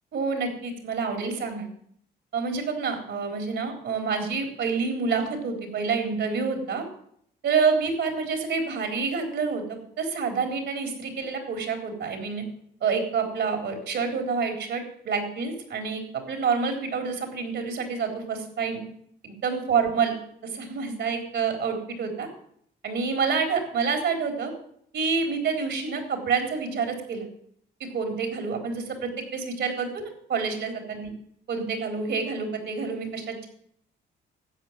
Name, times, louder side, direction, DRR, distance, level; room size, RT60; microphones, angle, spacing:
voice 1, 0.1-1.7 2.3-6.8 7.4-12.4 12.8-16.0 16.3-18.8 19.2-20.1 20.4-22.3 22.8-24.5 24.9-27.3 27.8-31.1 31.5-33.5, right 5 dB, 70° right, 4 dB, 4.0 m, -28 dB
13.0 x 8.5 x 7.6 m, 0.68 s
cardioid pair, 90°, 20 cm